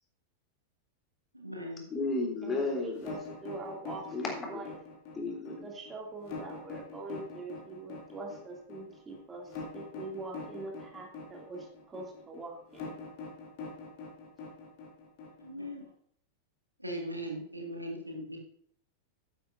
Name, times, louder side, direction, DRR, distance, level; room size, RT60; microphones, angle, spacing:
voice 1, 1.3-1.8 15.4-15.9 16.8-18.4, equal, 85° right, 0 dB, 2.4 m, -39 dB
voice 2, 1.9-3.1 4.1-4.7 5.1-5.7, left 3 dB, 20° left, 0 dB, 3.6 m, -33 dB
voice 3, 2.4-4.1 4.5-4.6 5.6-9.5 9.7-12.9, right 3 dB, 20° right, 0 dB, 2.7 m, -43 dB
sound 1, 3.0-15.9, left 4 dB, 45° left, 3.0 m, -43 dB
12.0 x 10.5 x 2.7 m, 0.64 s
figure-of-eight pair, 90°, 0 cm